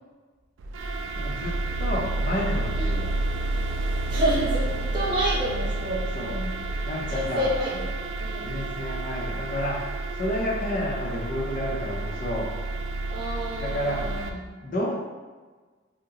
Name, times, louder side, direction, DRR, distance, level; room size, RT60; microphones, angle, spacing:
sound 1, 0.6-14.3, right 2 dB, 70° right, 0.3 m, -30 dB
voice 1, 1.2-3.1 6.1-6.3 6.9-7.5 8.4-12.5 13.6-14.0 14.6-15.0, left 1 dB, 40° left, -3 dB, 0.6 m, -30 dB
voice 2, 4.1-6.5 7.0-7.9 8.2-8.5 13.1-14.5, equal, 25° right, -7 dB, 0.9 m, -29 dB
2.8 x 2.1 x 3.6 m, 1.4 s
head